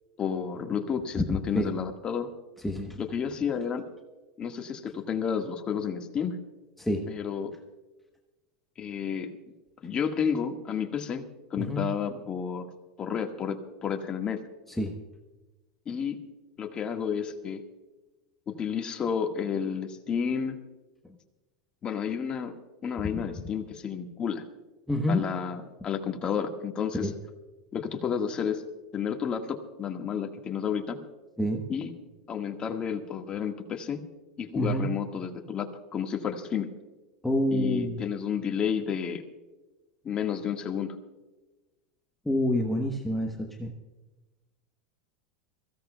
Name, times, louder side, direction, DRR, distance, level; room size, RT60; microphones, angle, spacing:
voice 1, 0.2-2.3 3.0-3.9 4.4-6.4 7.1-7.6 8.8-9.3 9.8-11.2 11.5-12.7 13.0-14.4 15.8-16.2 16.6-17.6 18.5-20.6 21.8-22.5 22.8-24.5 25.1-27.1 27.7-28.6 28.9-31.0 31.7-31.9 32.3-34.0 34.4-36.7 37.5-39.2 40.0-41.0, left 7 dB, 30° left, 4 dB, 1.7 m, -31 dB
voice 2, 2.6-3.0 6.8-7.1 11.6-11.9 14.8-15.0 24.9-25.2 27.0-27.1 31.4-31.6 34.5-34.9 37.2-38.1 42.3-43.7, left 1 dB, 5° left, 1 dB, 1.1 m, -27 dB
23.5 x 16.0 x 2.3 m, 1.1 s
supercardioid pair, 120°, 3 cm